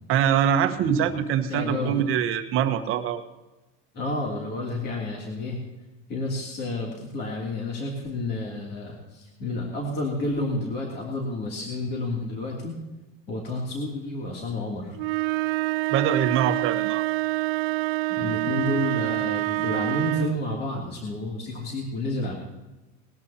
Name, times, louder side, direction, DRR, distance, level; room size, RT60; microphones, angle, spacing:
voice 1, 0.1-3.2 15.9-17.0, right 9 dB, 45° right, 8 dB, 1.3 m, -24 dB
voice 2, 1.5-2.0 3.9-5.6 6.1-12.7 13.3-15.0 18.2-22.3, left 2 dB, 30° left, -2 dB, 2.9 m, -30 dB
sound 1, 15.0-20.4, right 23 dB, 70° right, 0.4 m, -26 dB
20.5 x 13.5 x 2.9 m, 1.1 s
supercardioid pair, 150°, 31 cm